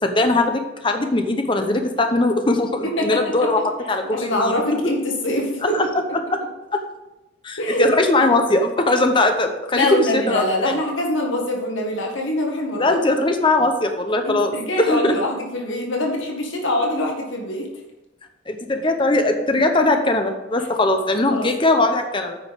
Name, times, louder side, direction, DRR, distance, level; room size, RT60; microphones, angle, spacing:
voice 1, 0.0-4.5 6.3-6.4 7.4-10.7 12.7-15.1 18.5-22.4, left 2 dB, 25° left, 5 dB, 0.8 m, -20 dB
voice 2, 2.8-3.3 4.1-5.8 7.6-7.9 9.7-13.0 14.2-17.7 21.3-21.5, left 1 dB, 80° left, 1 dB, 1.8 m, -24 dB
9.2 x 5.5 x 5.3 m, 1.0 s
head